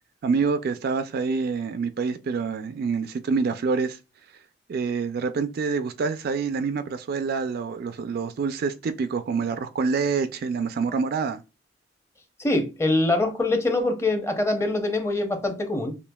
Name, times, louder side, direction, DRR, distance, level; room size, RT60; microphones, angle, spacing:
voice 1, 0.2-4.0 4.7-11.4, right 5 dB, 55° right, 0.3 m, -26 dB
voice 2, 12.4-16.0, left 2 dB, 15° left, 0.7 m, -24 dB
5.0 x 2.7 x 2.2 m
head